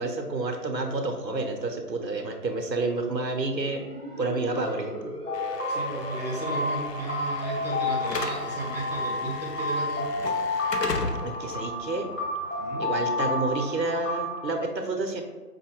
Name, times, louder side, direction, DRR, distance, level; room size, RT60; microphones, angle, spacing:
voice 1, 0.0-3.8 4.2-5.1 11.2-12.1 12.8-15.2, right 3 dB, 90° right, 4 dB, 0.8 m, -29 dB
sound 1, 3.6-8.4, right 1 dB, 35° right, 0.5 m, -40 dB
sound 2, 5.2-14.5, left 2 dB, 50° left, 1.1 m, -30 dB
Slam / Alarm, 5.3-13.4, left 4 dB, 80° left, 0.6 m, -37 dB
voice 2, 5.7-10.1 12.6-12.9, right 2 dB, 25° left, -7 dB, 0.8 m, -34 dB
5.1 x 2.2 x 3.5 m, 1.4 s
figure-of-eight pair, 155°, 49 cm